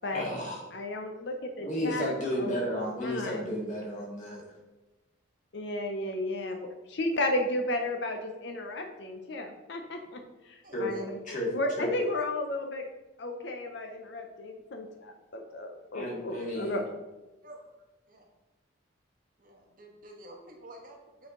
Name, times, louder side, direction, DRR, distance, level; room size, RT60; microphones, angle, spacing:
voice 1, 0.1-0.6 1.6-4.4 10.7-10.9 11.3-11.5 11.8-11.9 15.9-16.9, left 1 dB, 40° left, -3 dB, 1.9 m, -33 dB
voice 2, 0.7-2.1 2.4-2.6 3.0-3.6 5.5-12.9 13.2-16.8, left 1 dB, 60° left, 4 dB, 0.6 m, -34 dB
voice 3, 10.6-11.1 12.1-12.2 16.4-16.7 17.4-17.7 18.1-18.3 19.4-21.3, right 1 dB, 45° right, 1 dB, 1.2 m, -50 dB
8.3 x 4.6 x 3.8 m, 1.1 s
head